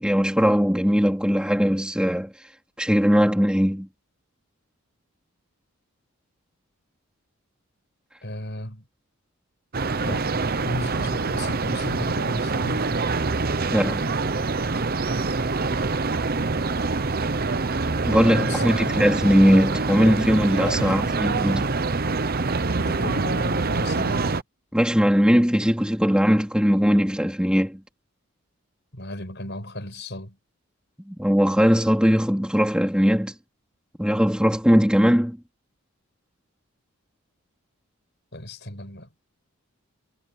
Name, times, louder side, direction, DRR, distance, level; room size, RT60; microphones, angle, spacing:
voice 1, 0.0-2.3 2.8-3.9 13.7-14.1 18.0-21.7 24.7-27.8 31.1-33.3 34.0-35.4, equal, 5° right, 3.4 m, -20 dB
voice 2, 8.2-8.8 10.1-10.4 10.6-12.9 18.2-19.0 20.6-21.3 22.8-24.4 28.9-30.4 38.3-39.1, left 1 dB, 50° left, 8.0 m, -34 dB
sound 1, 9.7-24.4, right 3 dB, 40° right, 0.8 m, -25 dB
head